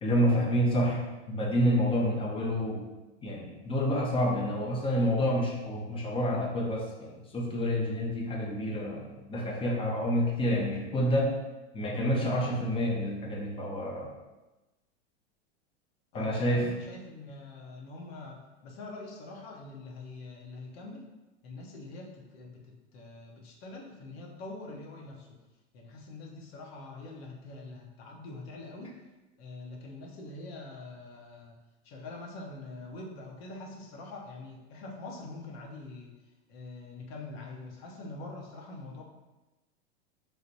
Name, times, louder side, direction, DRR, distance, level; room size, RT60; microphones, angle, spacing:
voice 1, 0.0-2.9 3.2-11.4 11.7-14.1 16.1-16.7, equal, 15° left, -1 dB, 0.6 m, -28 dB
voice 2, 16.1-21.0 21.4-25.3 25.7-29.0 29.4-31.6 31.8-36.1 36.5-39.0, left 2 dB, 60° left, -1 dB, 0.8 m, -44 dB
3.3 x 2.1 x 4.0 m, 1.1 s
hypercardioid pair, 120°, 34 cm